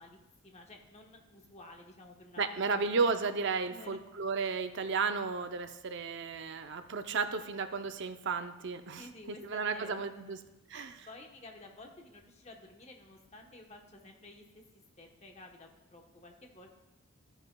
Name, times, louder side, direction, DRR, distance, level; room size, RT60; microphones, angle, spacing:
voice 1, 0.0-2.8 3.7-4.0 9.0-10.4 10.7-14.6 15.0-16.7, left 2 dB, 30° left, 2 dB, 1.0 m, -53 dB
voice 2, 2.4-9.0 9.4-10.4 10.7-11.0, right 4 dB, 55° right, 8 dB, 0.5 m, -33 dB
13.0 x 8.9 x 2.3 m, 0.97 s
head